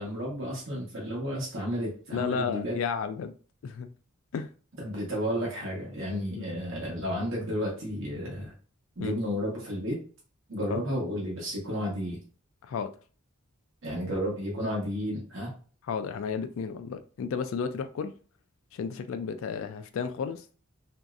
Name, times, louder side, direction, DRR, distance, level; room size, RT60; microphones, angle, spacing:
voice 1, 0.0-2.8 4.8-8.5 9.0-10.0 10.5-12.2 13.8-15.5, equal, 60° right, -3 dB, 0.9 m, -32 dB
voice 2, 2.1-3.3 3.6-3.9 4.3-4.5 6.3-6.5 9.0-9.1 10.7-10.8 12.6-12.9 15.9-18.1 18.7-20.6, left 6 dB, 65° left, 9 dB, 0.3 m, -32 dB
3.0 x 2.6 x 2.4 m, 0.39 s
head